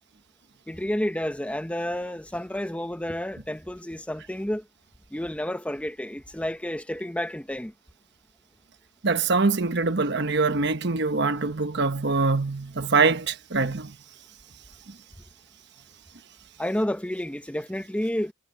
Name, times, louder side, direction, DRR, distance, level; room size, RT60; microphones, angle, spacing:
voice 1, 0.7-4.6 5.1-7.7 16.6-18.3, left 1 dB, 5° left, 0.8 m, -30 dB
voice 2, 9.0-14.0, right 4 dB, 60° right, 1.1 m, -24 dB
head